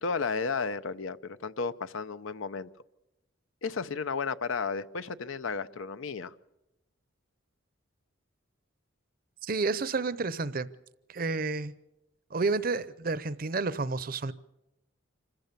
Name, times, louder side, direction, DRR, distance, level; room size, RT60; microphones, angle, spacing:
voice 1, 0.0-2.7 3.6-6.3, left 4 dB, 80° left, 13 dB, 0.7 m, -33 dB
voice 2, 9.4-10.7 11.1-11.7 12.3-14.3, right 3 dB, 45° right, 16 dB, 0.7 m, -30 dB
26.0 x 15.0 x 6.8 m, 0.92 s
head